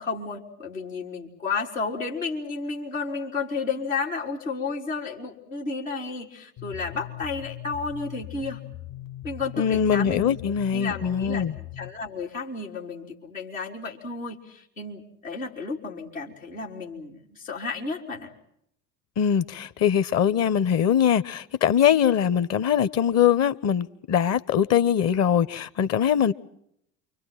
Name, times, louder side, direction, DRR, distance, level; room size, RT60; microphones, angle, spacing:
voice 1, 0.0-8.6 9.2-11.5 11.8-18.3, left 4 dB, 80° left, 4.2 m, -32 dB
sound 1, 6.6-11.9, left 15 dB, 60° left, 4.6 m, -40 dB
voice 2, 9.6-11.5 19.2-26.3, left 9 dB, 40° left, 1.2 m, -22 dB
29.0 x 25.5 x 5.9 m
figure-of-eight pair, 65°, 39 cm